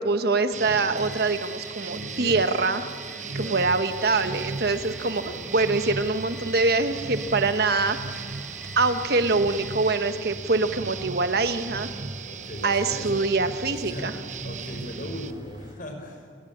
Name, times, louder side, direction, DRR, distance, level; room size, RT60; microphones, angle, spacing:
voice 1, 0.0-2.9 3.4-8.2 8.8-11.9 12.6-14.1, right 3 dB, 60° right, 9 dB, 1.3 m, -24 dB
sound 1, 0.5-15.3, right 5 dB, 45° right, 0.9 m, -37 dB
sound 2, 0.9-10.3, right 1 dB, ahead, 5.1 m, -45 dB
voice 2, 1.9-2.5 3.2-3.7 4.7-5.4 12.3-13.2 13.7-14.1 14.4-16.3, left 1 dB, 50° left, 5 dB, 5.4 m, -39 dB
sound 3, 3.8-15.7, equal, 25° right, 3.7 m, -44 dB
29.5 x 19.0 x 8.7 m, 2.2 s
head